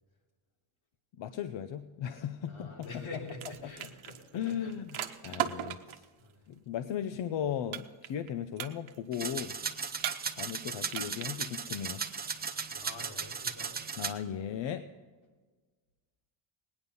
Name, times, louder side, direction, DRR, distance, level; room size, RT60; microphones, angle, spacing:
voice 1, 1.2-3.1 3.6-3.7 4.3-5.0 5.2-6.0 6.5-9.6 10.3-12.0 14.0-14.9, left 9 dB, 60° left, 9 dB, 0.7 m, -37 dB
voice 2, 2.4-5.8 6.2-6.5 12.7-13.8, left 2 dB, 80° left, -1 dB, 3.2 m, -47 dB
sound 1, 2.8-3.0 3.3-6.1 7.7-8.3 8.6-9.1 10.0-10.6 10.9-11.4, right 11 dB, 70° right, 1.0 m, -37 dB
sound 2, 9.1-14.1, right 5 dB, 20° right, 0.6 m, -37 dB
18.5 x 10.0 x 5.4 m, 1.4 s
cardioid pair, 170°, 49 cm